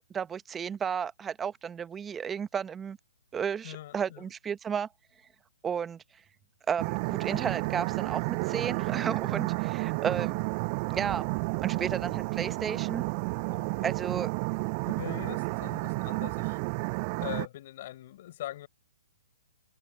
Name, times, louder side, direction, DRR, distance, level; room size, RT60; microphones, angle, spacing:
voice 1, 0.0-3.0 3.3-4.9 5.6-6.0 6.7-10.4 10.9-11.3 11.6-13.0 13.8-14.3, right 7 dB, 15° right, 0.9 m, -33 dB
voice 2, 3.6-4.2 11.8-12.2 13.5-13.9 14.9-16.6 17.2-18.7, left 14 dB, 45° left, 4.1 m, -42 dB
sound 1, 6.8-17.5, right 31 dB, 35° right, 6.7 m, -31 dB
hypercardioid pair, 135°, 0 cm